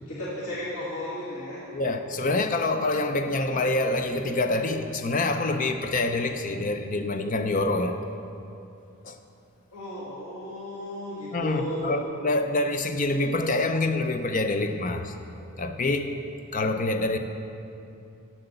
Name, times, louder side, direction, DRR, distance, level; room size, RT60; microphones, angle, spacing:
voice 1, 0.1-1.7 9.7-12.0, left 1 dB, 85° left, -9 dB, 1.9 m, -34 dB
voice 2, 1.7-8.0 9.0-9.2 11.3-15.1 15.6-16.1 16.5-17.2, left 2 dB, 35° left, 7 dB, 0.5 m, -26 dB
7.9 x 7.7 x 6.8 m, 2.7 s
head